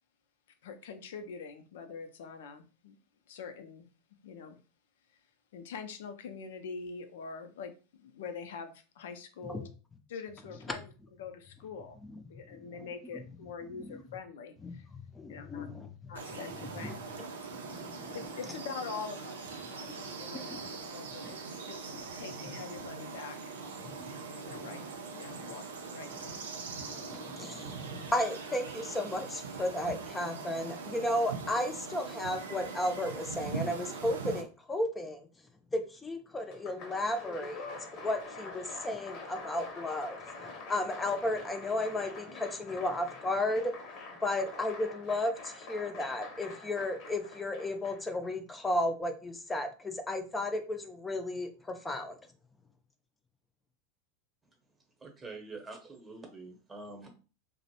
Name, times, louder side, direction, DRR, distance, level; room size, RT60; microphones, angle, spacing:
voice 1, 0.6-2.9 3.3-3.9 4.2-4.6 5.5-9.7 10.1-10.9 11.2-12.0 12.3-14.9 15.3-15.7 16.1-17.0 18.1-21.4 21.7-21.8 22.1-23.6 24.4-24.8 25.1-25.6 25.9-26.1, left 5 dB, 75° left, 8 dB, 0.5 m, -44 dB
voice 2, 14.6-16.1 16.5-16.9 17.6-18.2 19.8-19.9 20.5-20.6 21.2-21.3 23.8-24.8 25.3-25.5 26.1-26.3 26.8-35.3 35.7-40.2 40.7-43.7 44.2-52.2, left 1 dB, 15° left, 6 dB, 0.5 m, -34 dB
sound 1, 16.2-34.4, right 4 dB, 90° right, 0.5 m, -42 dB
Applause, 36.4-48.3, left 3 dB, 50° left, 0.8 m, -46 dB
voice 3, 55.0-57.1, right 3 dB, 20° right, 2 dB, 0.8 m, -46 dB
2.5 x 2.0 x 2.8 m, 0.35 s
hypercardioid pair, 105°, 0 cm